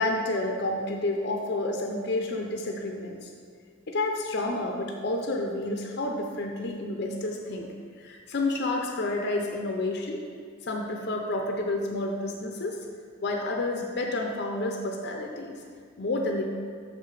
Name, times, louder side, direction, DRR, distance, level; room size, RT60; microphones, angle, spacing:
voice 1, 0.0-3.3 3.9-7.7 8.0-10.2 10.6-12.8 13.2-15.6 16.0-16.5, left 2 dB, 50° left, 1 dB, 0.6 m, -30 dB
6.1 x 4.7 x 4.8 m, 2.1 s
head